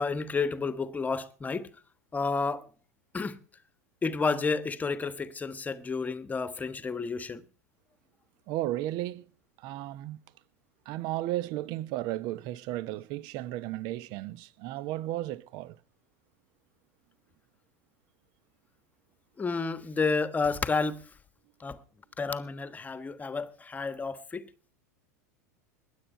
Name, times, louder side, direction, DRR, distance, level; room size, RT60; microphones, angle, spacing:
voice 1, 0.0-1.7 2.1-2.7 3.1-3.4 4.0-7.4 19.4-21.0 21.6-21.8 22.2-24.5, left 4 dB, 15° left, 1.3 m, -31 dB
voice 2, 8.5-9.2 9.6-10.2 10.9-15.7, right 15 dB, 50° right, 0.9 m, -34 dB
20.5 x 8.4 x 5.4 m
hypercardioid pair, 90°, 9 cm